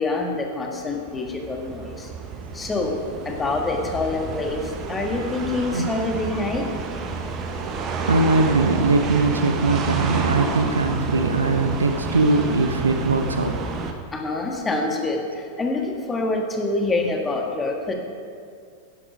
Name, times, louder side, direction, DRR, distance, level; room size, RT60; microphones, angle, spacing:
voice 1, 0.0-2.1 2.5-3.0 3.3-6.7 14.1-17.9, left 2 dB, 15° left, 2 dB, 1.8 m, -26 dB
sound 1, 0.8-13.9, right 4 dB, 30° right, 1.1 m, -30 dB
voice 2, 8.1-13.5, right 3 dB, 75° right, 7 dB, 0.8 m, -21 dB
11.0 x 11.0 x 5.1 m, 2.3 s
figure-of-eight pair, 90°, 0 cm